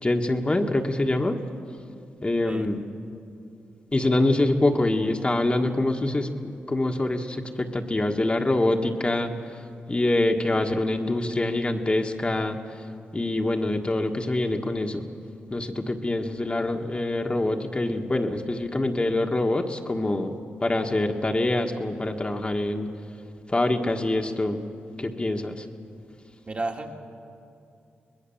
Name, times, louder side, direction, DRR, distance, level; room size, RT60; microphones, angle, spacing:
voice 1, 0.0-1.4 2.2-2.8 3.9-9.3 9.9-12.6 13.1-15.1 15.5-20.3 20.6-22.9 23.5-24.6 25.0-25.6, left 2 dB, 25° left, 3 dB, 1.6 m, -25 dB
voice 2, 26.5-26.9, right 2 dB, 35° right, 1 dB, 2.6 m, -32 dB
24.5 x 20.0 x 7.3 m, 2.5 s
cardioid pair, 60°, 4 cm